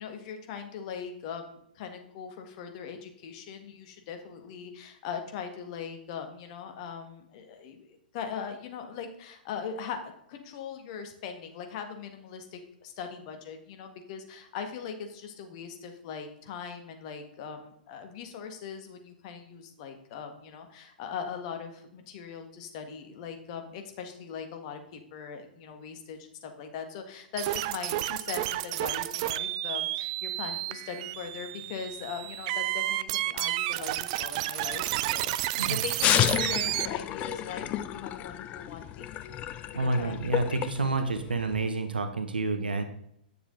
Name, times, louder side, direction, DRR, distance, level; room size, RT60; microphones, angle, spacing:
voice 1, 0.0-39.4 39.7-40.2, left 6 dB, 45° left, 6 dB, 1.6 m, -40 dB
sound 1, 27.4-36.9, right 16 dB, 40° right, 0.4 m, -31 dB
sound 2, 36.0-41.7, left 12 dB, 30° left, 0.5 m, -30 dB
voice 2, 39.7-42.8, right 3 dB, 80° right, 8 dB, 1.0 m, -29 dB
9.8 x 6.7 x 3.9 m, 0.73 s
figure-of-eight pair, 115°, 5 cm